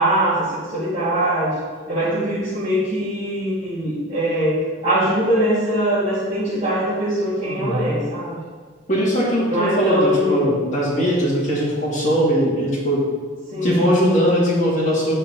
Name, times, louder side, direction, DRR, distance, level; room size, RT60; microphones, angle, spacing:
voice 1, 0.0-1.5 1.9-8.4 9.5-10.5 13.5-13.8, right 1 dB, 30° right, -13 dB, 2.4 m, -22 dB
voice 2, 7.4-7.9 8.9-13.1 13.6-15.1, equal, 35° left, -8 dB, 2.1 m, -20 dB
10.0 x 5.4 x 4.1 m, 1.5 s
head